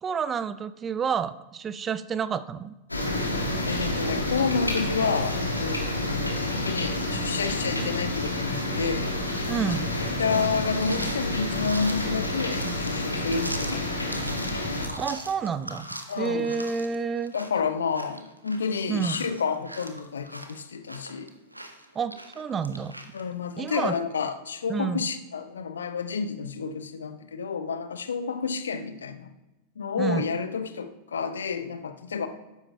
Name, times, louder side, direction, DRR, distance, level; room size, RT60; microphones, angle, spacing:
voice 1, 0.0-2.7 9.5-9.9 15.0-15.9 16.2-17.3 18.9-19.3 22.0-22.9 23.6-23.9 24.7-25.1 30.0-30.2, right 6 dB, 20° right, 14 dB, 0.4 m, -29 dB
sound 1, 2.9-14.9, left 1 dB, 85° left, 1.4 m, -29 dB
voice 2, 3.7-9.1 10.2-14.2 16.1-16.6 17.3-21.3 23.1-29.3 29.8-32.3, left 5 dB, 70° left, 11 dB, 0.6 m, -30 dB
sound 2, 10.7-23.2, right 1 dB, 85° right, 0.7 m, -41 dB
12.5 x 9.8 x 2.2 m, 1.1 s
figure-of-eight pair, 90°, 0 cm